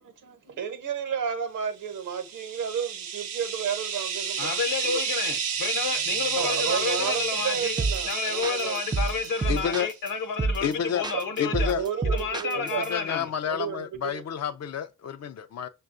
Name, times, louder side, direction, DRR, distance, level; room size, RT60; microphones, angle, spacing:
voice 1, 0.0-4.5 4.8-5.0 6.4-8.8 11.1-11.2 11.7-12.9 13.4-14.2, right 7 dB, 65° right, 0.9 m, -32 dB
sound 1, 2.0-9.8, right 7 dB, 85° right, 0.6 m, -31 dB
voice 2, 4.4-7.8 8.0-11.7 12.0-13.3, left 5 dB, 65° left, 0.9 m, -30 dB
Hip Hop Loop, 7.8-8.1 8.4-10.1 10.4-10.7 11.0-12.9, right 3 dB, 15° right, 0.3 m, -28 dB
voice 3, 9.5-9.9 10.6-11.0 11.4-11.8 12.6-15.7, left 8 dB, 50° left, 0.5 m, -30 dB
5.8 x 2.3 x 2.5 m
hypercardioid pair, 40°, 34 cm